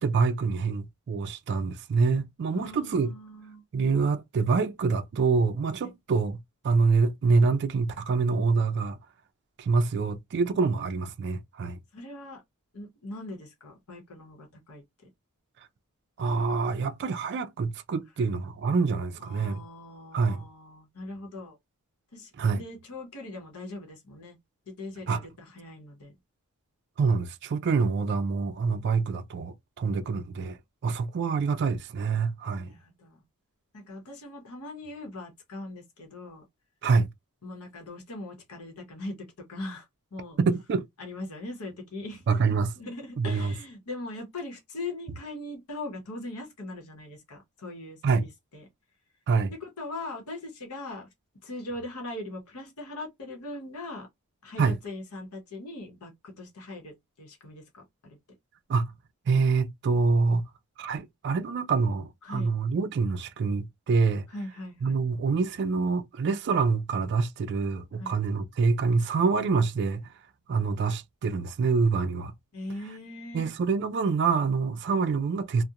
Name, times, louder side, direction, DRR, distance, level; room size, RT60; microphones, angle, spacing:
voice 1, 0.0-3.1 3.7-6.4 6.6-9.0 9.6-11.8 16.2-19.6 20.1-20.4 22.4-22.6 25.1-25.3 27.0-30.6 30.8-32.7 36.8-37.1 40.4-40.8 42.3-42.7 43.2-43.6 48.0-48.3 49.3-49.5 54.6-54.8 58.7-58.9 59.3-60.4 60.8-64.3 64.8-70.1 70.5-72.3 73.3-75.6, right 4 dB, 50° right, 0.3 m, -26 dB
voice 2, 2.5-3.6 5.8-5.9 11.9-12.4 12.7-14.8 19.2-21.6 22.1-24.4 24.7-26.2 32.5-33.2 33.7-36.4 37.4-39.2 39.5-39.9 40.1-40.4 41.0-42.2 42.8-48.7 49.6-51.1 51.4-54.1 54.4-58.2 62.2-62.5 64.3-65.0 68.0-68.2 72.5-73.5, left 2 dB, 75° left, 0.9 m, -40 dB
2.8 x 2.1 x 2.3 m
head